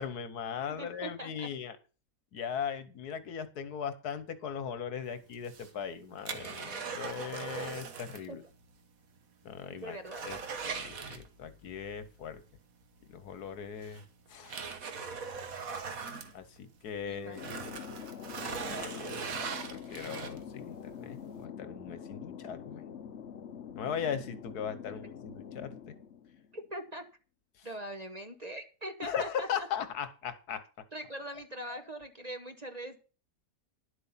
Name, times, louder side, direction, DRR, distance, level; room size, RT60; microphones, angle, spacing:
voice 1, 0.0-1.8 2.3-8.4 9.4-10.0 10.2-10.4 10.6-12.4 13.1-14.0 14.3-14.7 16.3-17.4 18.7-22.8 23.8-25.9 27.6-27.7 29.0-30.8, left 7 dB, 75° left, 13 dB, 1.6 m, -39 dB
voice 2, 0.7-1.5 8.3-8.4 9.7-10.3 17.0-17.4 26.5-27.1 27.6-29.7 30.9-33.0, right 1 dB, 30° right, 7 dB, 1.0 m, -42 dB
sound 1, 5.3-8.3 8.6-8.7 9.2-9.3 9.6-11.7 13.1-13.2 13.8-16.9 17.3-20.6 21.1-21.2, right 5 dB, 65° right, 1.6 m, -40 dB
Thunder, 17.3-26.7, left 8 dB, 50° left, 1.0 m, -45 dB
11.0 x 8.1 x 5.6 m, 0.35 s
omnidirectional pair, 1.7 m